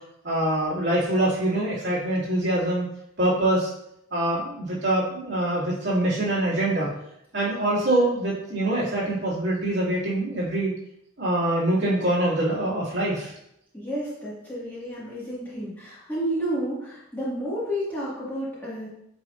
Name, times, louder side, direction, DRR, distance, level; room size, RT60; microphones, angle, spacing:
voice 1, 0.2-2.9 3.2-3.7 4.1-6.9 7.3-10.7 11.2-13.3, right 1 dB, 55° right, -8 dB, 2.4 m, -24 dB
voice 2, 13.7-18.9, equal, 10° left, -9 dB, 1.8 m, -31 dB
8.6 x 4.2 x 2.5 m, 0.79 s
head